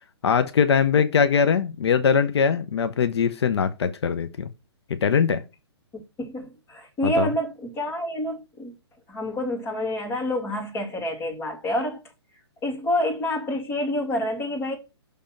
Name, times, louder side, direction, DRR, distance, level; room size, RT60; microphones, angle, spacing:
voice 1, 0.2-4.5 4.9-5.4 7.0-7.3, left 6 dB, 70° left, 0.8 m, -21 dB
voice 2, 5.9-8.7 9.1-12.0 12.6-14.8, left 1 dB, 15° left, 2.3 m, -28 dB
6.5 x 3.5 x 5.6 m
hypercardioid pair, 155°, 14 cm